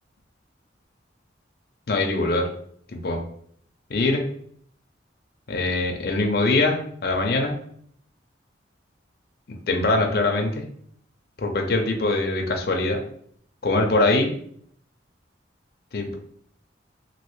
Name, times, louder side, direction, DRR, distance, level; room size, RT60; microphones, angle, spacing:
voice 1, 1.9-2.5 2.9-3.2 3.9-4.2 5.5-7.5 9.5-10.6 11.4-13.0 13.6-14.3 15.9-16.2, left 2 dB, 55° left, 2 dB, 0.5 m, -23 dB
3.1 x 2.6 x 3.1 m, 0.63 s
head